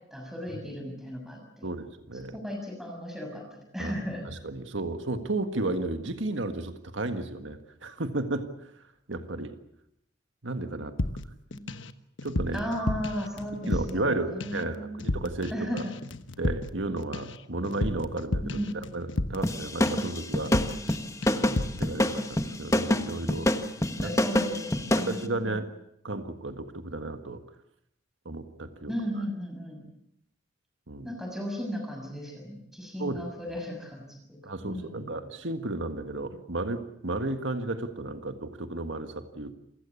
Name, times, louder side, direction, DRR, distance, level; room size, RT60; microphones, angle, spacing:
voice 1, 0.1-1.7 2.3-4.3 11.5-11.7 12.5-15.0 15.5-15.9 18.4-18.8 20.8-20.9 24.0-25.6 28.9-29.8 31.0-34.4 34.6-35.1, equal, ahead, 2 dB, 6.5 m, -35 dB
voice 2, 1.6-2.4 3.8-3.9 4.3-8.8 9.1-9.5 10.4-10.9 12.2-12.7 13.7-15.8 16.4-20.5 21.3-23.5 23.9-24.2 25.0-25.7 26.0-27.4 28.3-28.9 30.9-31.1 33.0-33.3 34.4-39.5, right 2 dB, 80° right, 8 dB, 1.7 m, -33 dB
sound 1, 11.0-11.9 12.2-14.1 14.4-14.7 15.0-15.5 15.8-19.6 19.9-20.2 20.5-21.0 21.2-21.9, left 2 dB, 80° left, 1.2 m, -32 dB
sound 2, 19.4-25.2, left 1 dB, 15° left, 1.3 m, -26 dB
28.0 x 16.0 x 8.4 m, 0.77 s
head